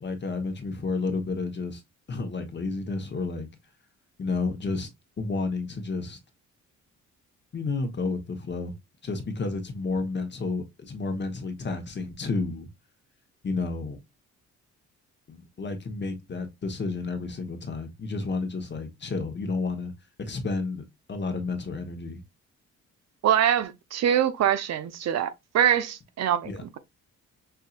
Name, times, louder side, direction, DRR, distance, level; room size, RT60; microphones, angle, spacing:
voice 1, 0.0-1.8 2.1-3.5 4.2-4.9 5.2-6.2 7.5-8.7 9.0-12.7 13.4-14.0 15.3-19.9 20.2-20.8 21.1-22.2 26.4-26.6, left 3 dB, 35° left, 1.2 m, -31 dB
voice 2, 23.2-26.5, right 10 dB, 60° right, 0.6 m, -24 dB
5.6 x 2.7 x 2.4 m
cardioid pair, 90°, 30 cm